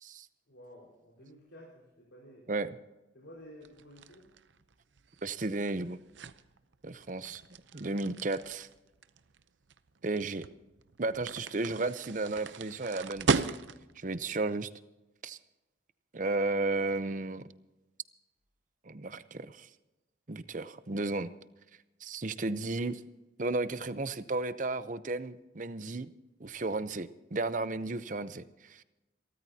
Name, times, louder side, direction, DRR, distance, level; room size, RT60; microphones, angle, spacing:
voice 1, 0.5-2.5 3.1-4.3, equal, 85° left, -4 dB, 4.6 m, -53 dB
sound 1, 3.6-14.0, right 4 dB, 80° right, 0.7 m, -37 dB
voice 2, 5.2-6.0 6.8-7.4 7.7-8.7 10.0-10.4 11.0-13.6 14.0-14.7 15.2-15.4 16.1-17.4 18.9-19.7 20.3-21.3 22.0-23.0 23.4-26.1 26.4-28.8, right 2 dB, 45° right, 13 dB, 0.7 m, -33 dB
28.0 x 13.5 x 2.8 m, 1.0 s
head